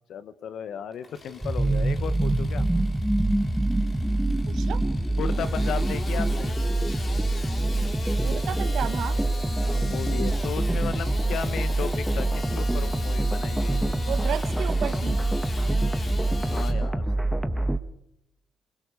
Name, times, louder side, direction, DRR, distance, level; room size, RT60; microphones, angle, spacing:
voice 1, 0.1-2.7 5.2-6.6 9.6-13.9 16.5-17.7, left 8 dB, 70° left, 14 dB, 1.6 m, -35 dB
Engine starting / Sawing, 0.9-16.7, left 3 dB, 35° left, 4.2 m, -41 dB
sound 1, 1.4-17.8, right 2 dB, 5° right, 1.4 m, -25 dB
voice 2, 4.5-4.8 8.2-9.2 14.1-15.2, right 9 dB, 70° right, 13 dB, 1.6 m, -32 dB
29.0 x 21.5 x 5.0 m, 0.80 s
cardioid pair, 90°, 0 cm